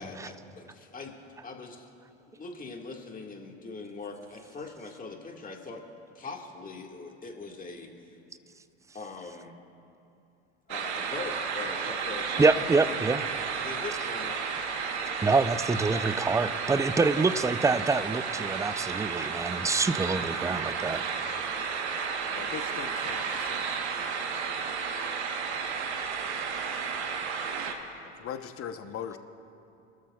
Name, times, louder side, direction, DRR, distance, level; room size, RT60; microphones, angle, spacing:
voice 1, 0.0-1.9 2.4-5.9 6.2-8.1 8.9-9.6 10.7-12.9 13.6-14.4 15.9-16.1 17.0-17.3, left 3 dB, 25° left, 2 dB, 2.0 m, -41 dB
sound 1, 10.7-27.7, right 6 dB, 80° right, 1.3 m, -32 dB
voice 2, 12.4-13.2 15.2-21.0, right 4 dB, 10° right, 14 dB, 0.5 m, -26 dB
voice 3, 22.3-23.7 28.0-29.2, left 8 dB, 40° left, 8 dB, 1.0 m, -39 dB
26.0 x 13.0 x 2.4 m, 2.7 s
hypercardioid pair, 75°, 33 cm